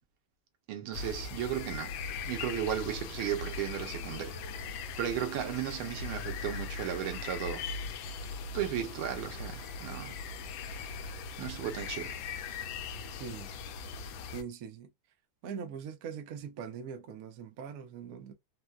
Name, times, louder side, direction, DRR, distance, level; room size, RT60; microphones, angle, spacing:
voice 1, 0.7-4.4 5.0-7.7 8.5-10.2 10.7-10.8 11.4-12.2, right 10 dB, 85° right, 1.6 m, -35 dB
sound 1, 0.9-14.4, left 5 dB, 75° left, 1.3 m, -40 dB
voice 2, 13.2-13.5 14.3-14.9 15.4-18.3, right 7 dB, 70° right, 0.8 m, -42 dB
4.3 x 2.1 x 2.3 m
omnidirectional pair, 2.3 m